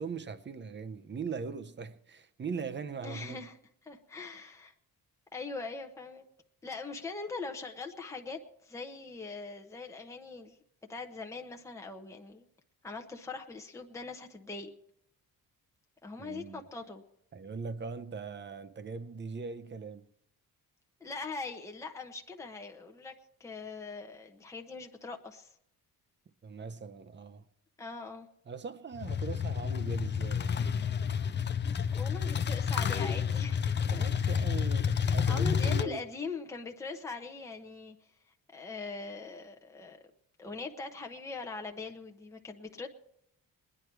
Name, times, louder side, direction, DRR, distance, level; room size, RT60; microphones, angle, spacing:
voice 1, 0.0-3.4 16.2-16.6 17.3-20.0 26.4-27.5 28.5-30.6 33.9-36.0, right 5 dB, 30° right, 0.8 m, -40 dB
voice 2, 3.0-3.6 3.8-4.7 5.3-6.2 6.6-10.6 10.9-12.4 12.8-14.7 16.0-17.0 21.0-23.1 23.4-25.5 27.8-28.3 32.0-34.4 35.3-38.0 38.5-40.0 40.4-42.9, left 4 dB, 10° left, 0.9 m, -41 dB
sound 1, 28.9-35.8, left 7 dB, 30° left, 0.5 m, -30 dB
22.5 x 10.0 x 4.6 m
wide cardioid pair, 180°, 35 cm